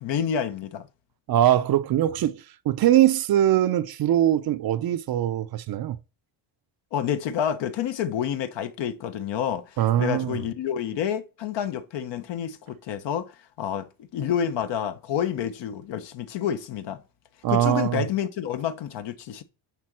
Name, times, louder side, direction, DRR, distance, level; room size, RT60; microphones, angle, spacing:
voice 1, 0.0-0.9 6.9-17.0 17.5-19.4, left 8 dB, 60° left, 1.1 m, -29 dB
voice 2, 1.3-6.0 9.8-10.4 17.4-18.1, right 12 dB, 50° right, 0.7 m, -22 dB
10.5 x 3.9 x 6.1 m
cardioid pair, 135°, 47 cm